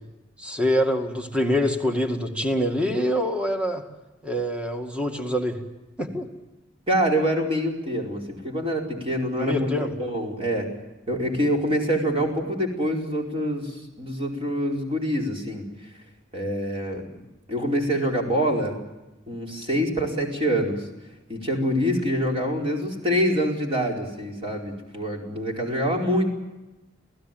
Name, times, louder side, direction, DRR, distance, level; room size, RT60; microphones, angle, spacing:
voice 1, 0.4-3.8 4.2-5.6 6.0-6.3 9.4-9.9, equal, 5° right, 4 dB, 2.0 m, -25 dB
voice 2, 6.9-9.7 10.0-10.7 11.1-15.6 16.3-17.1 17.5-18.8 19.3-20.9 21.3-26.3, equal, 30° right, 0 dB, 4.7 m, -25 dB
27.5 x 17.0 x 9.2 m, 1.1 s
head